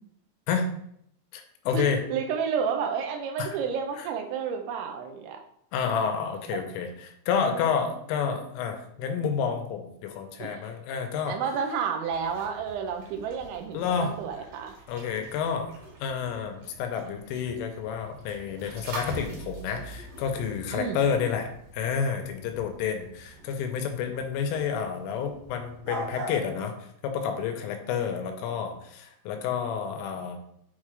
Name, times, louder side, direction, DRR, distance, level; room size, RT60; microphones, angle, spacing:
voice 1, 1.3-2.0 3.4-3.5 5.7-11.4 13.7-14.1 14.9-15.7 16.0-30.4, left 6 dB, 90° left, 5 dB, 3.3 m, -30 dB
voice 2, 2.1-5.4 10.4-10.7 11.3-14.8 20.7-21.0, right 6 dB, 80° right, 5 dB, 2.9 m, -31 dB
sound 1, 12.0-26.5, right 1 dB, 60° right, 2.5 m, -43 dB
8.1 x 3.7 x 3.2 m, 0.71 s
omnidirectional pair, 5.6 m